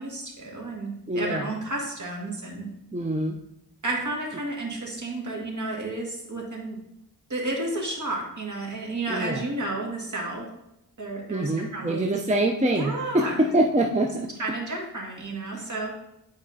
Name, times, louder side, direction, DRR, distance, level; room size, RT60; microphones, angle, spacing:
voice 1, 0.0-2.7 3.8-6.8 7.3-10.5 11.0-12.2 12.7-13.4 14.4-15.9, right 2 dB, 45° right, -1 dB, 2.0 m, -32 dB
voice 2, 1.1-1.5 2.9-3.4 9.1-9.4 11.3-14.3 15.5-15.7, right 1 dB, 20° right, 2 dB, 0.6 m, -25 dB
9.6 x 4.8 x 2.8 m, 0.85 s
wide cardioid pair, 75°, 40 cm